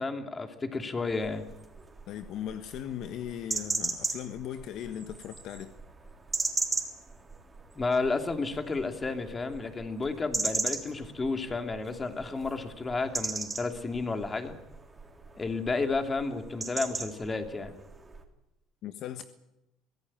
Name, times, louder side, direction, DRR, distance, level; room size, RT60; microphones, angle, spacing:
voice 1, 0.0-1.4 7.7-14.5 15.4-17.7, left 3 dB, 20° left, 3.0 m, -32 dB
sound 1, 1.1-18.2, right 3 dB, 20° right, 3.5 m, -38 dB
voice 2, 2.1-5.8 18.8-19.2, left 10 dB, 60° left, 1.4 m, -38 dB
24.5 x 16.5 x 8.9 m
supercardioid pair, 100°, 0 cm